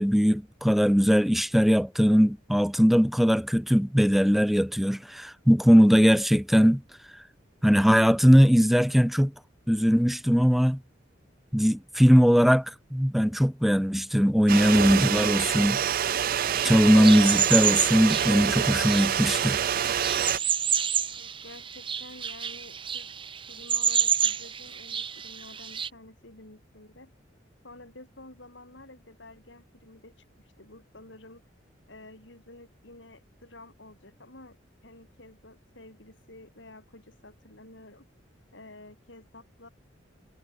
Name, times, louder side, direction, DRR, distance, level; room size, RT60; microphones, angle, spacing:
voice 1, 0.0-6.8 7.6-9.3 9.7-10.8 11.5-12.7 12.9-15.8 16.6-19.6, equal, ahead, 0.6 m, -20 dB
sound 1, 14.5-20.4, right 9 dB, 50° right, 0.4 m, -26 dB
sound 2, 16.1-25.9, right 8 dB, 25° right, 1.2 m, -30 dB
voice 2, 21.1-23.1 23.5-27.1 27.6-30.1 30.4-31.4 31.9-34.6 34.8-38.1 38.5-39.7, left 2 dB, 75° left, 7.8 m, -50 dB
head